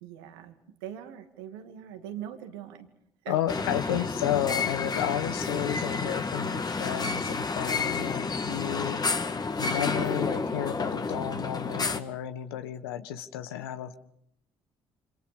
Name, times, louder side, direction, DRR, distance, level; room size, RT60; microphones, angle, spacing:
voice 1, 0.0-0.5 0.8-2.9 3.2-3.4 3.8-4.1, right 10 dB, 85° right, 7 dB, 2.5 m, -41 dB
voice 2, 3.3-9.0 9.6-14.0, left 11 dB, 85° left, 10 dB, 1.4 m, -32 dB
sound 1, 3.5-12.0, left 4 dB, 35° left, 2.0 m, -30 dB
29.0 x 27.0 x 5.3 m, 0.69 s
hypercardioid pair, 55°, 12 cm